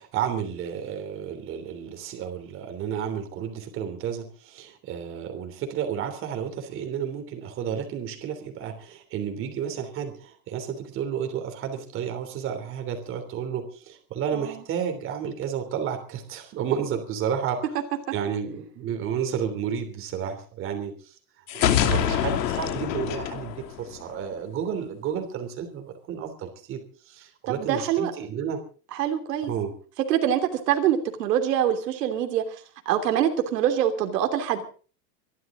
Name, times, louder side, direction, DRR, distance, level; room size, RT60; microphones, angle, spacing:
voice 1, 0.0-17.7 18.1-21.1 21.5-28.6 29.4-29.7, right 8 dB, 25° right, 6 dB, 3.2 m, -31 dB
voice 2, 14.3-14.6 21.8-22.1 27.5-28.1 28.9-29.5 30.1-34.6, right 10 dB, 70° right, 6 dB, 3.1 m, -25 dB
sound 1, 21.5-24.3, left 10 dB, 80° left, 2.8 m, -25 dB
25.0 x 12.5 x 3.8 m, 0.39 s
supercardioid pair, 165°, 50 cm